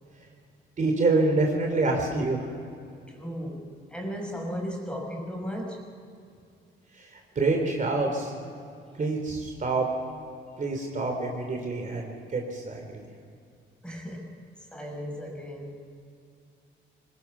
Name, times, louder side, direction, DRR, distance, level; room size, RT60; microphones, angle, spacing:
voice 1, 0.8-2.5 6.9-8.3 8.9-9.9 10.6-13.0, right 3 dB, 40° right, 2 dB, 3.4 m, -27 dB
voice 2, 3.1-5.8 8.7-8.8 10.5-10.6 13.8-14.3 14.7-15.8, equal, 5° left, 1 dB, 5.4 m, -36 dB
22.0 x 20.5 x 6.0 m, 2.4 s
cardioid pair, 90°, 20 cm